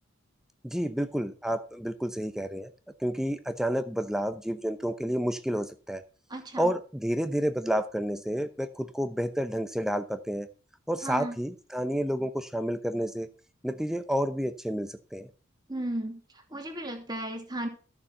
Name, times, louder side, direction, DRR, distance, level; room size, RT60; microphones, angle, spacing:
voice 1, 0.6-2.7 3.0-6.0 6.6-10.5 10.9-13.3 13.6-15.3, equal, ahead, 9 dB, 0.7 m, -30 dB
voice 2, 6.3-6.7 11.0-11.4 15.7-16.2 16.5-17.7, right 1 dB, 20° right, 3 dB, 2.5 m, -34 dB
14.0 x 7.0 x 5.8 m, 0.36 s
head